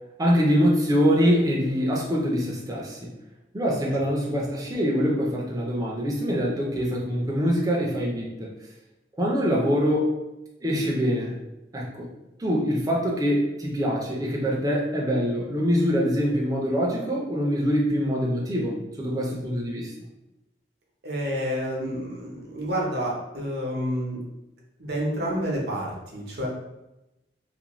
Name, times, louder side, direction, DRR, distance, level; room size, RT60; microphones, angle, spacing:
voice 1, 0.2-3.1 3.5-8.5 9.2-10.1 10.6-11.4 11.7-12.1 12.4-19.9, equal, 20° right, -3 dB, 0.5 m, -24 dB
voice 2, 21.0-24.2 24.8-26.5, equal, 65° right, -2 dB, 0.7 m, -29 dB
2.5 x 2.1 x 3.0 m, 0.96 s
head